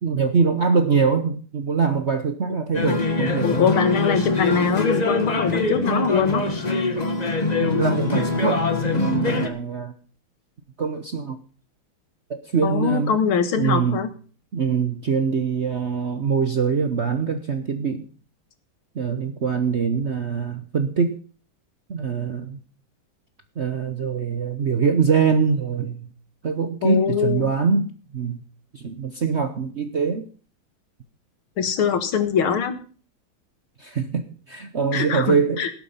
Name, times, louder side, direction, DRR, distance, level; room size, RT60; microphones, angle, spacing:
voice 1, 0.0-3.7 7.6-9.9 10.8-11.4 12.3-13.1 13.6-14.0 14.5-18.1 18.9-21.2 21.9-22.6 23.6-26.1 26.4-28.4 28.7-30.2 33.8-35.7, right 5 dB, 50° right, 8 dB, 0.9 m, -23 dB
sound 1, 2.7-9.5, left 2 dB, 20° left, 1.3 m, -23 dB
voice 2, 3.4-6.4 12.6-14.1 26.8-27.5 31.6-32.8 34.9-35.7, left 7 dB, 75° left, 10 dB, 2.4 m, -22 dB
17.5 x 7.8 x 5.7 m, 0.40 s
omnidirectional pair, 2.3 m